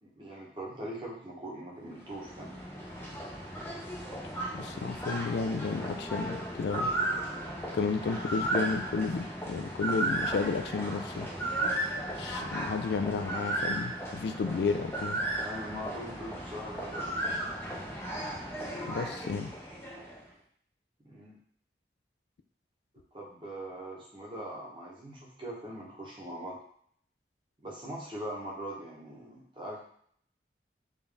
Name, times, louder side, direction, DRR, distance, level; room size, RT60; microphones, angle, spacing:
voice 1, 0.0-2.5 15.4-17.1 21.0-21.4 23.1-26.6 27.6-29.8, right 1 dB, 25° right, -4 dB, 1.0 m, -41 dB
sound 1, 1.9-20.3, right 1 dB, 15° left, 0.6 m, -35 dB
voice 2, 4.5-6.9 7.7-11.3 12.2-15.2 18.9-19.5, left 4 dB, 70° left, 8 dB, 0.3 m, -32 dB
3.8 x 2.6 x 3.4 m, 0.62 s
head